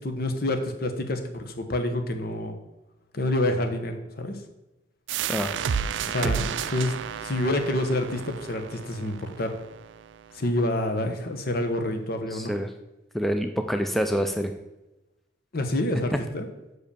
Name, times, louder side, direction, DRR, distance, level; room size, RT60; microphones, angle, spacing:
voice 1, 0.0-2.5 3.1-4.3 6.1-6.9 7.2-9.5 10.3-12.5 15.5-16.5, left 1 dB, 55° left, 6 dB, 1.0 m, -27 dB
sound 1, 5.1-10.5, right 7 dB, 90° right, 0.4 m, -32 dB
voice 2, 12.3-12.7 13.1-14.5, equal, ahead, 6 dB, 0.4 m, -27 dB
6.3 x 5.2 x 6.8 m, 1.0 s
head